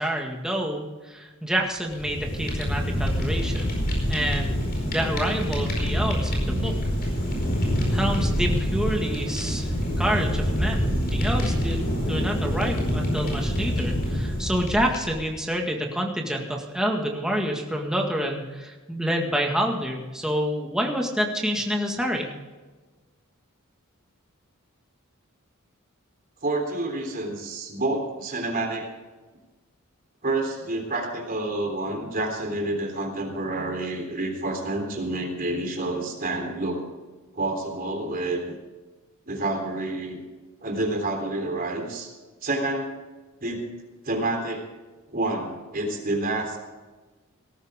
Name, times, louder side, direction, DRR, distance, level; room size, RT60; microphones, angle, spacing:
voice 1, 0.0-3.7 4.1-6.7 7.9-9.7 10.0-22.3, equal, 5° right, 0 dB, 1.8 m, -28 dB
Fire, 1.8-15.4, equal, 45° left, 4.8 m, -26 dB
voice 2, 26.4-28.9 30.2-36.8 37.3-38.4 39.3-40.2 40.6-42.1 42.4-42.9 43.4-43.7 44.0-44.6 45.1-46.6, right 2 dB, 45° right, 2 dB, 3.6 m, -28 dB
18.5 x 14.0 x 3.7 m, 1.3 s
head